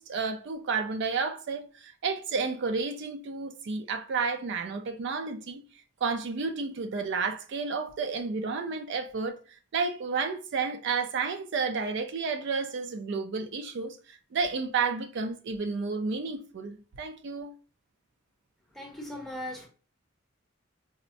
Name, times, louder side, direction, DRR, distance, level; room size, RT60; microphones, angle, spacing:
voice 1, 0.0-5.6 6.0-17.5, right 4 dB, 60° right, 0.4 m, -31 dB
voice 2, 18.8-19.7, left 1 dB, ahead, 0.7 m, -38 dB
4.1 x 2.1 x 2.5 m
head